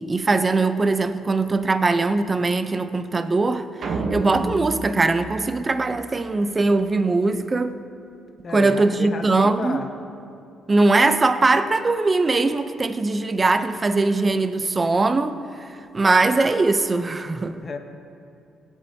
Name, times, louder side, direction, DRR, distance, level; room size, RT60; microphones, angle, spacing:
voice 1, 0.0-7.8 8.5-9.8 10.7-15.7 15.9-17.6, right 3 dB, 25° right, 0.5 m, -21 dB
sound 1, 3.8-6.3, right 3 dB, 55° right, 0.9 m, -30 dB
voice 2, 8.4-9.9 17.6-17.8, left 4 dB, 45° left, 0.9 m, -31 dB
17.5 x 8.2 x 2.7 m
cardioid pair, 90°, 0 cm